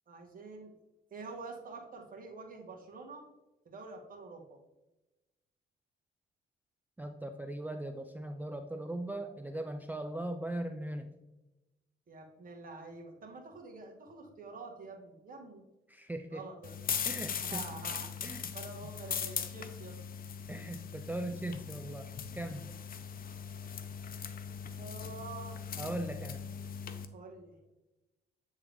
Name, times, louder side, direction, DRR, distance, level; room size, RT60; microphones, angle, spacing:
voice 1, 0.1-0.7 1.1-3.2 3.6-4.6 12.1-15.6 16.3-16.7 17.4-20.0 24.8-25.6 27.1-27.6, right 3 dB, 45° right, 1 dB, 1.6 m, -47 dB
voice 2, 7.0-11.1 15.9-16.4 17.0-17.6 18.2-18.5 20.5-22.1 22.3-22.7 25.8-26.4, right 1 dB, 10° right, 6 dB, 0.4 m, -39 dB
sound 1, 16.6-27.1, left 7 dB, 45° left, 0.6 m, -40 dB
8.7 x 3.6 x 3.4 m, 1.0 s
cardioid pair, 90°, 20 cm